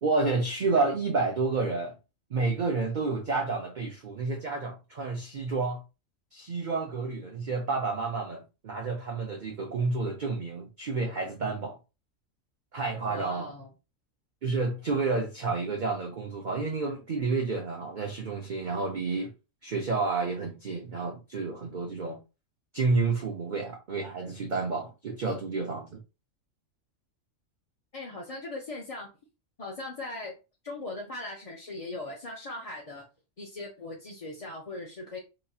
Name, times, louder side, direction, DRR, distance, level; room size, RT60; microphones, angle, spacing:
voice 1, 0.0-1.9 2.3-5.8 6.3-11.8 12.7-13.5 14.4-19.3 19.6-22.2 22.7-26.0, right 3 dB, 50° right, 0.6 m, -30 dB
voice 2, 13.1-13.7 27.9-29.1 29.6-30.3 30.6-33.1 33.4-35.2, left 2 dB, 40° left, 0.5 m, -39 dB
4.1 x 3.0 x 2.3 m
omnidirectional pair, 1.4 m